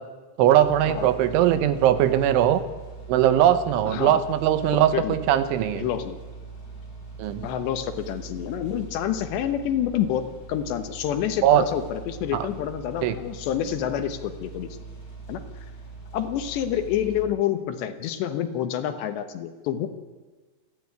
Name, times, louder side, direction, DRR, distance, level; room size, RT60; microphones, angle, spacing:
voice 1, 0.4-2.6 3.1-5.8 7.2-7.5 11.4-11.6 12.3-12.5 13.0-13.2, right 11 dB, 80° right, 12 dB, 3.5 m, -20 dB
sound 1, 0.6-17.2, right 4 dB, 20° left, 6.0 m, -42 dB
voice 2, 3.8-4.2 4.7-5.2 5.7-6.2 7.4-14.8 15.3-15.7 16.1-19.9, left 10 dB, 70° left, 9 dB, 3.1 m, -28 dB
28.5 x 11.0 x 9.5 m, 1.3 s
omnidirectional pair, 5.5 m